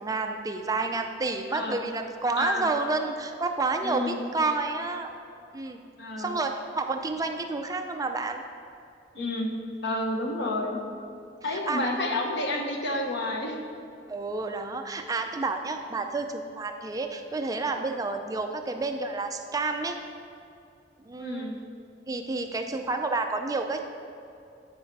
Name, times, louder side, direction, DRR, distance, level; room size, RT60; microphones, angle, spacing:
voice 1, 0.0-5.1 5.5-5.8 6.2-8.4 9.2-9.3 11.5-11.8 14.1-20.0 21.1-21.6 22.1-23.8, right 3 dB, 20° right, 5 dB, 0.4 m, -30 dB
voice 2, 1.5-1.9 2.4-2.7 3.8-4.2 6.0-6.3 9.1-9.5 9.8-10.8 11.4-13.6 21.2-21.6, left 1 dB, 65° left, 2 dB, 1.0 m, -30 dB
9.6 x 4.8 x 4.6 m, 2.5 s
head